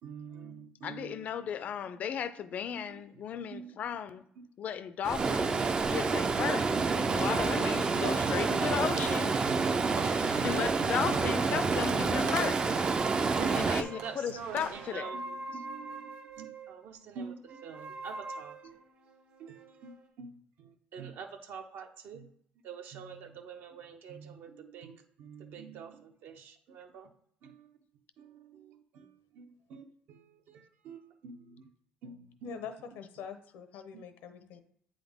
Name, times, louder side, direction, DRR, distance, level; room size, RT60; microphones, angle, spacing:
voice 1, 0.0-1.5 2.7-3.0 3.5-3.8 4.4-4.5 5.1-5.2 6.6-8.8 13.4-18.9 19.4-22.3 22.6-27.1 27.4-27.7 28.2-31.7 32.0-32.6 33.9-34.0, right 6 dB, 65° right, 0.8 m, -46 dB
voice 2, 0.8-4.2 4.6-5.6 5.9-9.3 10.3-12.6 13.6-15.1, left 8 dB, 45° left, 0.4 m, -35 dB
Stream, 5.0-13.8, right 4 dB, 25° right, 0.4 m, -28 dB
Walk footsteps / Slam, 9.4-14.9, right 4 dB, 85° right, 1.2 m, -46 dB
sound 1, 11.9-16.8 17.5-20.1, right 3 dB, 45° right, 1.2 m, -45 dB
voice 3, 32.4-34.6, left 6 dB, 90° left, 0.8 m, -45 dB
8.5 x 3.9 x 3.6 m
cardioid pair, 155°, 4 cm